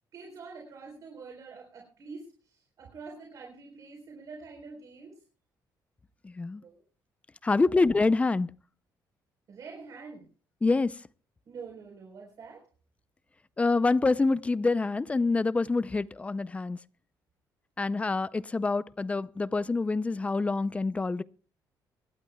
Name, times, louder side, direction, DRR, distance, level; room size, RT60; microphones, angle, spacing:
voice 1, 0.1-5.2 6.6-6.8 7.4-7.7 9.5-10.3 11.4-12.7, right 4 dB, 50° right, 4.2 m, -46 dB
voice 2, 6.2-6.6 7.4-8.5 10.6-11.0 13.6-16.8 17.8-21.2, left 3 dB, 15° left, 0.5 m, -26 dB
25.0 x 12.0 x 2.3 m
cardioid pair, 135°, 8 cm